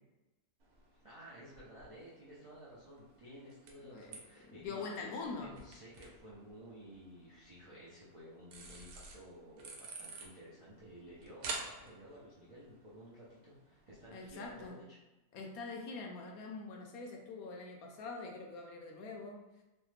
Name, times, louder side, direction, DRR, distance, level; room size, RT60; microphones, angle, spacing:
sound 1, 0.6-14.7, right 3 dB, 90° right, 1.1 m, -51 dB
voice 1, 1.0-5.1 5.4-15.0, equal, 55° right, -9 dB, 0.3 m, -54 dB
voice 2, 4.5-5.6 14.1-14.7 15.3-19.4, left 4 dB, 75° left, 1 dB, 1.0 m, -44 dB
3.1 x 2.0 x 3.2 m, 1.1 s
omnidirectional pair, 1.6 m